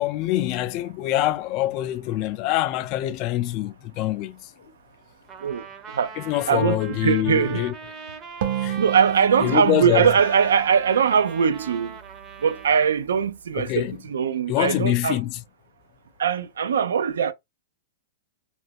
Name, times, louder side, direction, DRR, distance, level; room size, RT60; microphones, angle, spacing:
voice 1, 0.0-4.5 6.2-7.7 8.6-8.8 9.4-10.1 13.6-14.0 14.5-15.4, left 14 dB, 40° left, 0.3 m, -25 dB
sound 1, 3.8-7.0 7.4-7.7 8.1-8.2 9.0-9.2 9.5-9.6 10.0-10.9, left 6 dB, 75° left, 0.7 m, -47 dB
Trumpet, 5.3-13.0, right 6 dB, 25° right, 0.6 m, -40 dB
voice 2, 5.4-6.1 6.5-7.7 8.8-12.0 12.4-15.2 16.2-17.3, right 7 dB, 85° right, 0.4 m, -21 dB
sound 2, 8.4-11.9, right 11 dB, 60° right, 0.7 m, -32 dB
2.4 x 2.2 x 3.4 m
hypercardioid pair, 135°, 0 cm